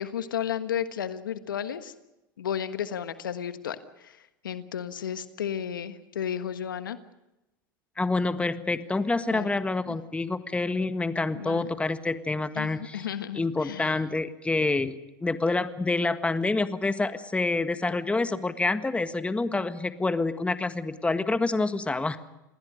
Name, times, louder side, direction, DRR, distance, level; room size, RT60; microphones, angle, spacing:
voice 1, 0.0-1.9 2.4-4.2 4.4-7.0 9.3-9.6 9.9-10.0 11.3-11.6 12.5-14.0, left 9 dB, 90° left, 12 dB, 1.5 m, -33 dB
voice 2, 8.0-13.1 13.4-22.2, left 3 dB, 10° left, 11 dB, 1.6 m, -27 dB
28.0 x 20.0 x 6.5 m, 0.95 s
hypercardioid pair, 95°, 11 cm